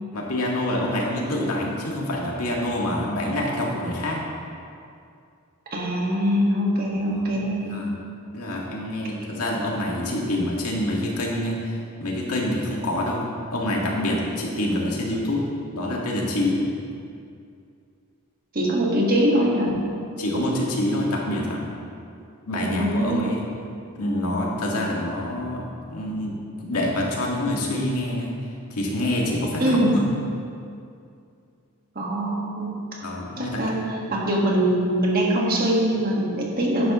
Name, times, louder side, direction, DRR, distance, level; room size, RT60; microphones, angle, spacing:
voice 1, 0.1-4.2 7.1-7.4 7.6-7.9 8.3-15.5 15.7-16.6 20.2-21.7 22.5-23.4 24.0-28.3 28.7-30.0 33.0-33.8, left 1 dB, 80° left, -2 dB, 1.9 m, -26 dB
voice 2, 5.7-7.9 18.5-19.8 22.5-23.4 29.6-30.1 31.9-32.9 33.4-36.9, equal, 40° right, -2 dB, 1.7 m, -23 dB
11.5 x 10.5 x 3.1 m, 2.4 s
head